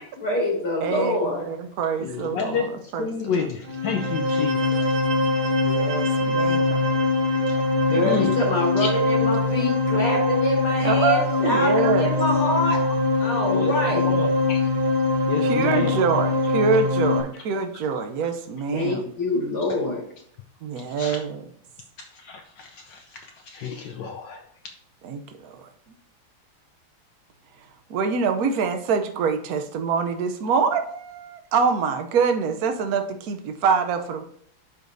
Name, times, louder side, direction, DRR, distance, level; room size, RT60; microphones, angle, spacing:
voice 1, 0.2-1.5 7.9-12.8 13.2-14.1 18.7-20.0, left 2 dB, 85° left, -3 dB, 4.0 m, -25 dB
voice 2, 0.8-1.2 1.5-3.5 5.6-6.8 7.9-8.1 10.8-12.2 15.4-19.1 20.6-21.4 25.0-25.7 27.9-34.2, right 5 dB, 70° right, 6 dB, 0.9 m, -25 dB
voice 3, 2.0-2.7 3.0-4.8 8.0-8.3 8.8-8.9 11.7-11.8 13.5-13.7 14.0-14.6 15.3-16.0 21.0-21.2 22.2-23.2 23.5-24.4, left 6 dB, 70° left, 4 dB, 1.2 m, -29 dB
sound 1, 3.6-17.2, left 2 dB, 90° right, 2.2 m, -22 dB
11.5 x 5.0 x 2.7 m, 0.65 s
omnidirectional pair, 2.4 m